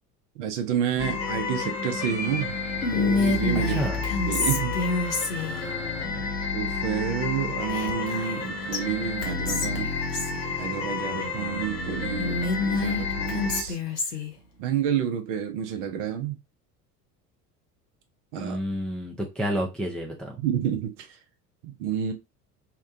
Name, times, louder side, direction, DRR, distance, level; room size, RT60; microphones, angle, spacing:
voice 1, 0.4-2.5 2.9-3.8 4.3-4.8 5.1-5.3 6.5-10.0 10.6-13.8 14.6-16.4 18.3-18.6 20.4-21.1 21.6-22.1, right 9 dB, 55° right, 0.7 m, -29 dB
sound 1, 1.0-13.6, left 4 dB, 50° left, 0.9 m, -30 dB
Whispering, 2.8-5.6 7.7-8.4 8.7-8.8 9.2-10.4 12.2-14.3, left 2 dB, 90° left, 0.6 m, -27 dB
voice 2, 3.7-4.0 5.3-6.2 18.4-20.4, equal, ahead, 0.4 m, -31 dB
2.8 x 2.2 x 2.4 m
figure-of-eight pair, 65°, 46 cm